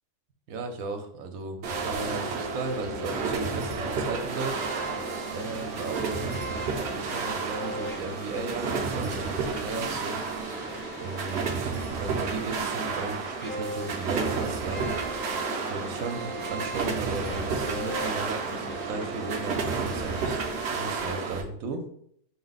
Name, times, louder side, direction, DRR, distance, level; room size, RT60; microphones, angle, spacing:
voice 1, 0.5-4.6 5.3-6.2 7.0-10.2 11.0-15.0 15.7-20.4 20.7-21.8, right 3 dB, 70° right, 5 dB, 1.1 m, -35 dB
sound 1, 1.6-21.4, right 4 dB, 55° right, 0.8 m, -31 dB
sound 2, 4.5-20.7, equal, 10° left, 0.7 m, -40 dB
5.8 x 2.2 x 3.9 m, 0.67 s
omnidirectional pair, 1.5 m